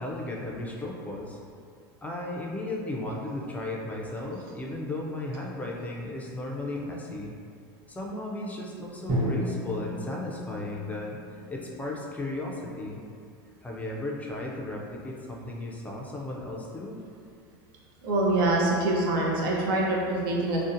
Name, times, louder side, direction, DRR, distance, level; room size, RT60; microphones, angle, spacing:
voice 1, 0.0-1.4 2.0-7.3 7.9-11.2 11.5-13.0 13.6-17.0, left 2 dB, 15° left, -2 dB, 0.3 m, -35 dB
Drum, 9.1-13.1, left 1 dB, 35° right, 0.7 m, -34 dB
voice 2, 18.0-20.6, right 2 dB, 75° right, -3 dB, 0.6 m, -25 dB
2.5 x 2.1 x 2.5 m, 2.3 s
supercardioid pair, 110°, 12 cm